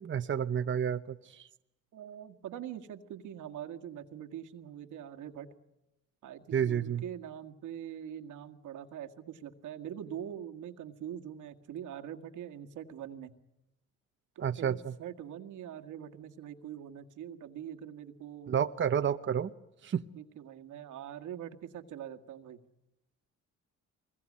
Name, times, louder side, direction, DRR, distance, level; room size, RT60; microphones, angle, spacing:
voice 1, 0.0-1.5 6.5-7.0 14.4-14.9 18.5-19.5 19.8-20.0, right 8 dB, 40° right, 9 dB, 0.9 m, -30 dB
voice 2, 1.9-5.5 6.2-13.3 14.4-18.6 20.1-22.6, right 10 dB, 80° right, 6 dB, 1.8 m, -43 dB
24.5 x 21.5 x 8.5 m, 0.92 s
cardioid pair, 90°, 30 cm